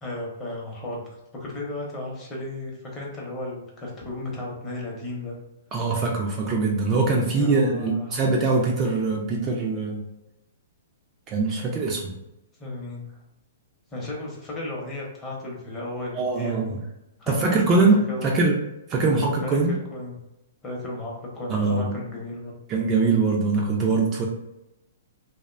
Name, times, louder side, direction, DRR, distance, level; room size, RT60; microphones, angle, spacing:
voice 1, 0.0-5.4 7.2-8.2 12.6-13.2 13.9-16.8 17.2-18.5 19.4-19.6 19.9-20.2 20.6-22.5, left 1 dB, 20° left, -3 dB, 0.7 m, -34 dB
voice 2, 5.7-10.0 11.3-12.1 16.1-16.8 17.3-18.6 18.9-19.7 21.5-22.0 22.7-24.3, right 3 dB, 25° right, -1 dB, 0.4 m, -22 dB
2.5 x 2.1 x 2.4 m, 0.90 s
hypercardioid pair, 145°, 0 cm